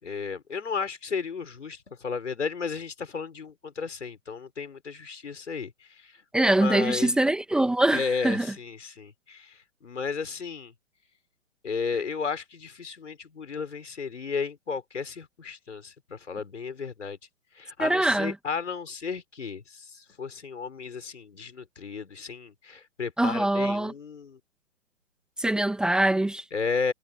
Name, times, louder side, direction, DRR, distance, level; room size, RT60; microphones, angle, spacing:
voice 1, 0.0-5.7 6.0-6.1 6.6-7.1 7.9-10.7 11.6-17.2 17.6-24.4 26.5-26.9, left 5 dB, 65° left, 5.4 m, -33 dB
voice 2, 6.3-8.5 17.8-18.3 23.2-23.9 25.4-26.4, right 1 dB, ahead, 2.0 m, -23 dB
figure-of-eight pair, 140°, 38 cm